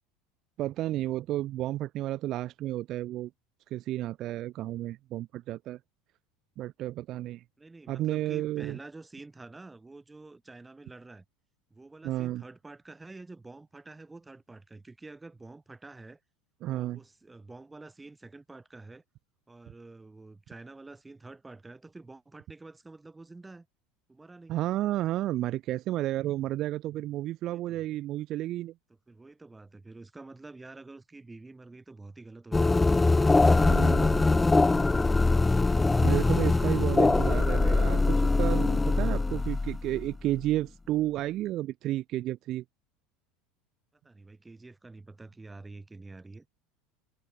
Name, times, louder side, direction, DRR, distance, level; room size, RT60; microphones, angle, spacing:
voice 1, 0.6-3.3 3.7-5.8 6.6-7.4 7.9-8.8 12.0-12.4 16.6-17.0 24.5-28.7 33.7-34.2 36.0-42.6, right 14 dB, 40° right, 1.7 m, -32 dB
voice 2, 7.6-11.2 11.7-16.2 16.7-19.0 19.5-23.7 24.1-24.6 27.5-27.8 29.1-33.0 34.0-35.4 44.0-46.5, right 3 dB, 10° right, 3.0 m, -48 dB
sound 1, 32.5-40.5, left 3 dB, 10° left, 0.6 m, -23 dB
supercardioid pair, 150°, 0 cm